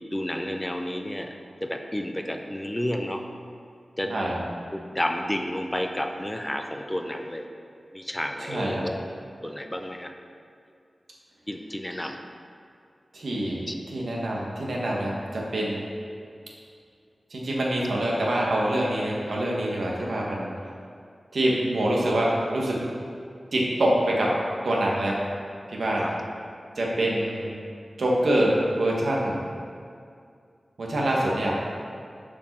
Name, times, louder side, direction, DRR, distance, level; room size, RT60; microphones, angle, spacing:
voice 1, 0.1-3.3 4.0-4.3 4.7-7.5 7.9-9.0 9.4-10.1 11.5-12.2 13.7-13.8 26.0-26.2, left 1 dB, 15° left, 4 dB, 0.6 m, -31 dB
voice 2, 8.5-8.8 13.1-15.8 17.3-20.5 21.3-22.8 23.5-24.3 24.6-25.2 25.7-26.0 26.8-27.5 28.0-29.4 30.8-31.6, right 1 dB, 85° right, -3 dB, 1.4 m, -25 dB
7.1 x 4.9 x 5.9 m, 2.3 s
wide cardioid pair, 70°, 0 cm